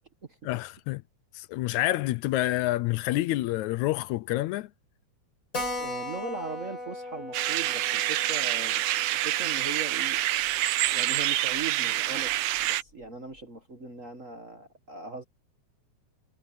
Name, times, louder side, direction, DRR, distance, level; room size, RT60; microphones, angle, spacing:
voice 1, 0.5-1.0 1.3-4.7, left 16 dB, 80° left, 1.9 m, -28 dB
Keyboard (musical), 5.5-10.6 10.9-11.0 11.2-11.3 11.6-11.7 12.3-12.6, left 2 dB, 25° left, 5.1 m, -39 dB
voice 2, 5.8-8.8 9.1-10.2 10.9-12.3 12.7-15.2, right 4 dB, 40° right, 1.1 m, -39 dB
sound 1, 7.3-12.8, right 14 dB, 80° right, 2.3 m, -27 dB
omnidirectional pair, 3.5 m